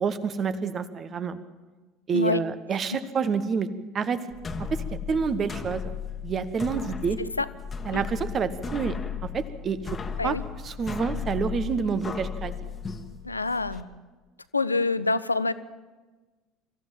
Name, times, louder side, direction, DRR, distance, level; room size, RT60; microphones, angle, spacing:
voice 1, 0.0-1.4 2.1-3.7 3.9-4.2 4.6-5.9 6.2-7.2 7.8-10.0 10.2-10.3 10.6-12.5, right 5 dB, 35° right, 12 dB, 1.3 m, -28 dB
sound 1, 4.3-13.8, left 6 dB, 25° left, 1.6 m, -35 dB
voice 2, 13.2-13.9 14.5-15.5, left 3 dB, 85° left, 15 dB, 0.6 m, -26 dB
25.5 x 15.0 x 7.5 m, 1.3 s
figure-of-eight pair, 65°, 0 cm